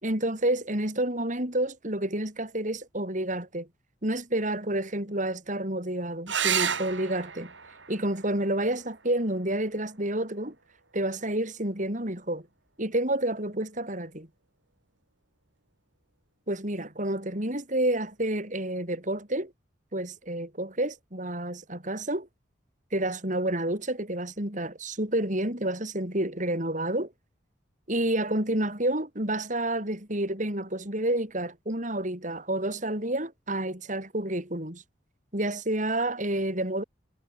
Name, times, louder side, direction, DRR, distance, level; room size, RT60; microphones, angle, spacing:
voice 1, 0.0-3.7 4.0-7.5 7.9-10.5 10.9-12.5 12.8-14.3 16.5-19.5 19.9-22.3 22.9-27.1 27.9-34.8 35.3-36.8, right 1 dB, 40° right, 6.8 m, -29 dB
sound 1, 6.3-11.3 13.2-13.8 17.3-17.4 17.7-17.8, right 8 dB, 75° right, 7.1 m, -34 dB
head